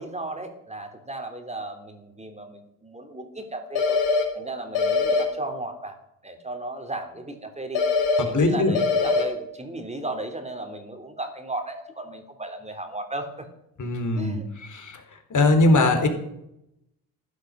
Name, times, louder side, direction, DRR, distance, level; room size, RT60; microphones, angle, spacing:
voice 1, 0.0-4.0 4.3-6.0 6.2-7.8 8.2-13.5 14.1-14.5, right 2 dB, 15° right, 5 dB, 3.4 m, -35 dB
sound 1, 3.8-4.2 4.8-5.2 7.8-8.2 8.8-9.2, left 4 dB, 65° left, 4.7 m, -22 dB
voice 2, 8.2-8.7 13.8-14.4 14.7-15.0 15.3-16.1, left 2 dB, 40° left, 6 dB, 4.1 m, -20 dB
15.0 x 12.0 x 6.4 m, 0.81 s
hypercardioid pair, 55°, 47 cm